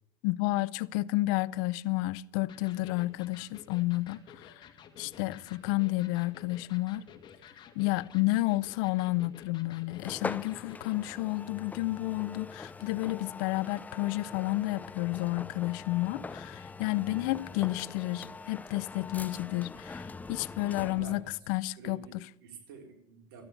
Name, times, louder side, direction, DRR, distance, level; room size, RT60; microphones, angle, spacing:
voice 1, 0.2-4.6 5.0-7.0 7.8-21.2 21.5-22.0, left 19 dB, 70° left, 0.5 m, -31 dB
Electric guitar, 2.5-11.2, left 8 dB, 40° left, 2.1 m, -53 dB
voice 2, 5.1-5.6 17.0-17.4 19.9-20.3 20.8-21.5 21.8-23.4, right 4 dB, 80° right, 4.0 m, -50 dB
sound 1, 10.0-21.3, left 4 dB, 15° left, 0.5 m, -43 dB
14.0 x 9.6 x 7.1 m
supercardioid pair, 95°, 12 cm